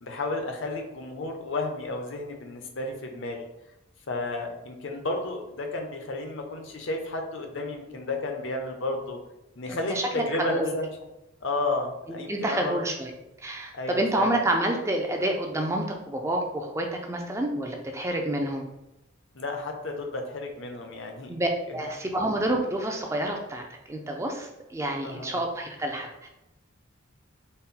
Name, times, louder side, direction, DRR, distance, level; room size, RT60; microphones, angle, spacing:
voice 1, 0.0-3.4 4.1-9.2 9.6-10.9 11.4-12.8 13.7-14.4 19.3-21.3 22.1-22.2 25.0-25.4, left 2 dB, 60° left, 3 dB, 0.6 m, -32 dB
voice 2, 9.7-10.7 12.1-13.1 13.4-18.6 21.3-26.3, right 1 dB, 15° right, 2 dB, 0.4 m, -28 dB
4.2 x 2.1 x 3.7 m, 0.93 s
head